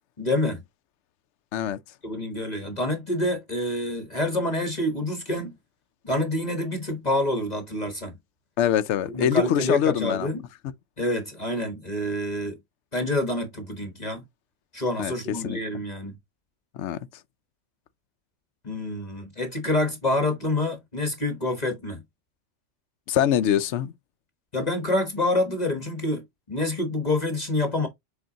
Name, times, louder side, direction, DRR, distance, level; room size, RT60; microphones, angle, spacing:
voice 1, 0.2-0.6 2.0-5.5 6.0-8.1 9.1-10.4 11.0-12.6 12.9-14.2 14.7-16.1 18.6-22.0 24.5-27.9, left 1 dB, 35° left, 1.2 m, -27 dB
voice 2, 8.6-10.3 15.0-15.6 16.7-17.1 23.1-23.9, left 10 dB, 70° left, 0.9 m, -24 dB
7.7 x 4.3 x 2.8 m
omnidirectional pair, 1.3 m